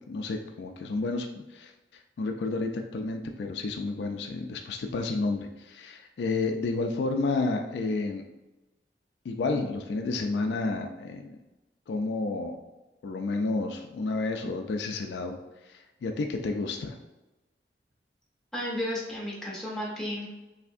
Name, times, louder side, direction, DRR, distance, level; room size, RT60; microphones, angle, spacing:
voice 1, 0.1-1.7 2.2-8.2 9.2-11.4 11.9-12.6 13.0-15.4 15.6-17.0, left 3 dB, 75° left, 4 dB, 0.3 m, -31 dB
voice 2, 18.5-20.3, left 1 dB, ahead, -5 dB, 0.6 m, -33 dB
3.3 x 2.7 x 2.5 m, 1.0 s
head